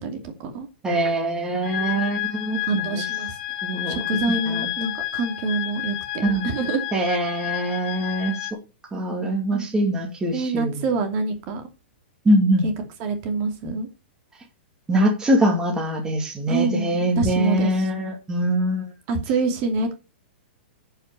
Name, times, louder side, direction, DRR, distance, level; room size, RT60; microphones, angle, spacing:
voice 1, 0.0-1.1 2.6-3.4 3.9-6.9 9.5-9.7 10.3-11.7 12.6-12.7 13.0-13.9 16.5-17.9 19.1-19.9, right 4 dB, 40° right, 5 dB, 2.6 m, -26 dB
voice 2, 0.8-3.0 3.6-4.0 4.5-4.7 6.2-6.5 6.9-8.3 8.9-10.8 12.2-12.7 14.9-18.9, right 1 dB, 10° right, 0 dB, 2.4 m, -23 dB
sound 1, 1.6-8.5, left 15 dB, 65° left, 1.7 m, -30 dB
10.0 x 5.8 x 6.9 m, 0.30 s
hypercardioid pair, 145°, 6 cm